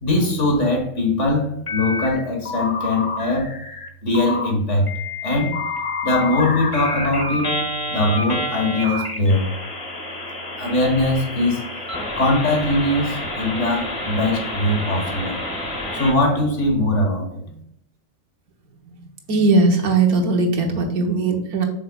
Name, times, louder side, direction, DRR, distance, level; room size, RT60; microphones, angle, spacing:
voice 1, 0.0-3.5 4.0-4.9 5.2-5.6 6.0-7.6 7.9-9.4 10.6-11.6 12.2-15.4 15.9-17.4, left 1 dB, 55° left, 2 dB, 1.9 m, -21 dB
sound 1, 1.7-2.2 2.4-3.9 4.1-4.5 4.9-16.1, left 2 dB, 25° left, 1.0 m, -28 dB
voice 2, 19.3-21.7, right 3 dB, 80° right, 2 dB, 1.6 m, -19 dB
7.7 x 5.6 x 2.3 m, 0.70 s
omnidirectional pair, 1.5 m